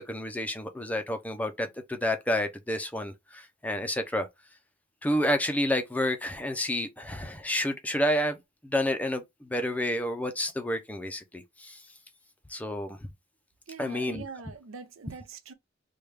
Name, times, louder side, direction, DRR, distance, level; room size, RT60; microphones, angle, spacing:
voice 1, 0.0-4.3 5.0-8.4 8.6-11.8 12.5-13.0 13.8-14.3, left 1 dB, 10° left, 0.4 m, -30 dB
voice 2, 13.7-15.5, right 4 dB, 85° right, 0.5 m, -43 dB
3.3 x 2.3 x 3.2 m
head